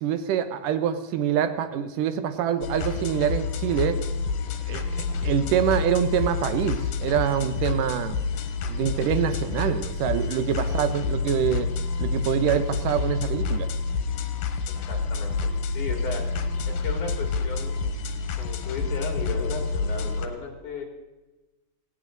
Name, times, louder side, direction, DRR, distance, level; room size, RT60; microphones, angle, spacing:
voice 1, 0.0-4.0 4.7-8.2 8.7-11.7 12.0-13.7, right 9 dB, 70° right, 10 dB, 2.4 m, -25 dB
sound 1, 2.6-20.3, left 4 dB, 80° left, 3.2 m, -28 dB
voice 2, 14.7-16.3 16.7-17.8 18.4-20.8, left 4 dB, 60° left, 2 dB, 4.2 m, -35 dB
20.0 x 17.0 x 4.0 m, 1.1 s
omnidirectional pair, 4.2 m